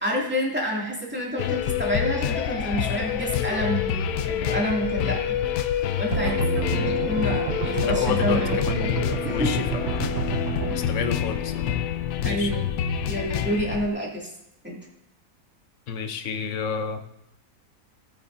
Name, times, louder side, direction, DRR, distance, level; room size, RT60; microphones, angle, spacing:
voice 1, 0.0-5.2 5.9-6.4 6.9-8.6 9.2-9.5 10.0-10.1 10.7-10.9 12.2-12.7 13.1-14.3 14.6-14.8, equal, 5° right, -4 dB, 2.3 m, -28 dB
sound 1, 1.4-13.9, left 9 dB, 75° left, 1.2 m, -27 dB
sound 2, 6.1-10.8, right 9 dB, 80° right, 0.6 m, -30 dB
voice 2, 6.7-7.1 7.8-10.0 10.7-11.6 12.2-12.5 15.9-17.0, left 7 dB, 55° left, 7 dB, 1.1 m, -30 dB
16.0 x 9.0 x 2.6 m, 0.82 s
omnidirectional pair, 1.7 m